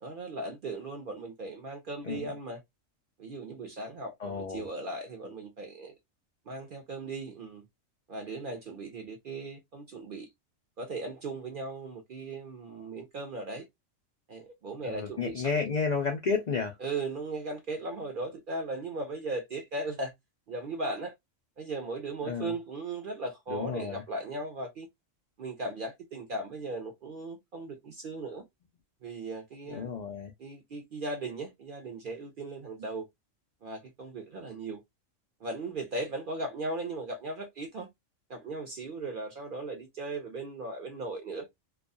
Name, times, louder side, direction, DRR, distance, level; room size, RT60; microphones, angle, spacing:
voice 1, 0.0-2.6 3.2-5.9 6.5-7.6 8.1-10.3 10.8-13.6 14.3-15.5 16.8-20.1 20.5-21.1 21.6-24.9 25.4-28.4 29.0-29.9 30.4-33.0 33.6-34.8 35.4-37.9 38.3-41.5, right 2 dB, 60° right, 0.5 m, -37 dB
voice 2, 4.2-4.7 14.8-16.8 22.2-22.6 23.5-24.0 29.7-30.3, left 5 dB, 85° left, 0.3 m, -32 dB
2.3 x 2.2 x 2.5 m
omnidirectional pair, 1.4 m